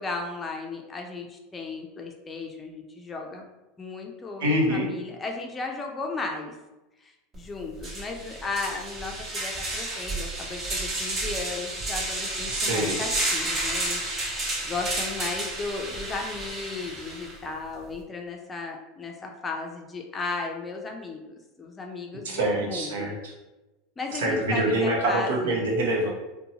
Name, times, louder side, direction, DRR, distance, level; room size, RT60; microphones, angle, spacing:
voice 1, 0.0-3.4 3.8-6.6 7.0-23.1 24.0-25.6, left 3 dB, 20° left, 2 dB, 0.4 m, -35 dB
voice 2, 4.4-4.9 12.5-13.0 22.2-23.3 24.1-26.1, right 1 dB, 90° right, -2 dB, 0.7 m, -25 dB
sound 1, 7.3-7.4 7.8-17.3, right 2 dB, 35° right, 0.9 m, -31 dB
2.6 x 2.2 x 2.8 m, 1.0 s
supercardioid pair, 120°, 0 cm